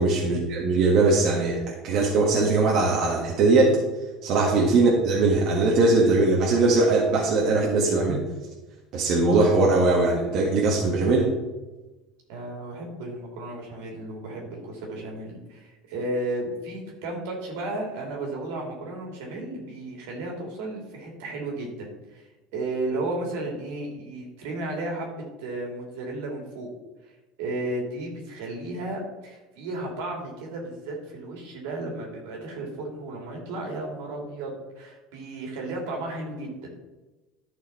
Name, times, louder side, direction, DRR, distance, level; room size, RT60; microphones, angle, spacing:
voice 1, 0.0-3.8 4.2-8.2 8.9-11.3, right 3 dB, 60° right, -2 dB, 1.6 m, -21 dB
voice 2, 12.3-22.2 22.5-26.7 27.0-27.1 27.4-36.8, right 2 dB, 80° right, 0 dB, 2.8 m, -34 dB
11.5 x 5.6 x 4.3 m, 1.1 s
supercardioid pair, 105°, 0 cm